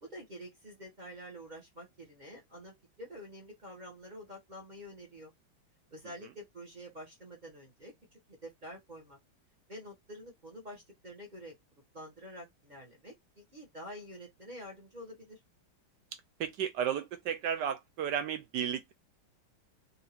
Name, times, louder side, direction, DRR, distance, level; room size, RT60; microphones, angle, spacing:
voice 1, 0.0-5.3 5.9-7.9 8.4-9.2 9.7-11.5 11.9-15.4, equal, 30° right, 1.0 m, -48 dB
voice 2, 16.4-18.9, right 8 dB, 75° right, 1.0 m, -33 dB
4.0 x 2.8 x 2.8 m
omnidirectional pair, 2.3 m